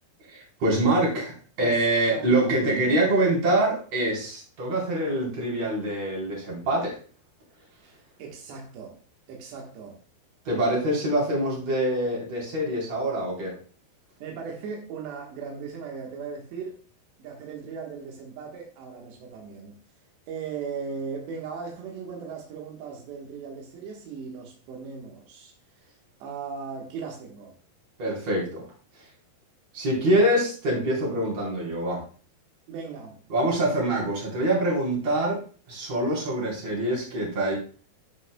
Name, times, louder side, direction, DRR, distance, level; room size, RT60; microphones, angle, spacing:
voice 1, 0.3-7.0 10.4-13.5 28.0-28.6 29.7-32.0 33.3-35.4 35.7-37.6, right 1 dB, 40° right, -4 dB, 5.1 m, -25 dB
voice 2, 2.1-2.5 7.8-9.0 9.3-10.0 14.2-16.8 17.2-19.8 20.3-25.5 26.2-27.6 32.7-33.2, right 5 dB, 85° right, 0 dB, 3.7 m, -38 dB
10.5 x 10.5 x 2.3 m, 0.39 s
omnidirectional pair, 4.8 m